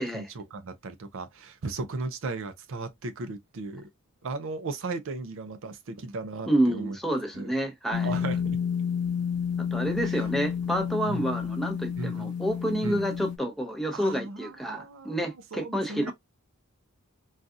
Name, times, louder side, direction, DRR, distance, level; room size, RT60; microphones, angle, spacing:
voice 1, 0.0-3.9 4.2-7.0 7.4-7.5 8.0-8.6 11.1-11.3 12.0-12.3 12.8-13.0 13.9-16.1, right 3 dB, 60° right, 0.5 m, -36 dB
voice 2, 6.5-8.1 9.6-16.1, right 1 dB, ahead, 0.6 m, -29 dB
sound 1, 7.9-13.4, left 7 dB, 85° left, 0.6 m, -30 dB
3.9 x 2.4 x 2.4 m
head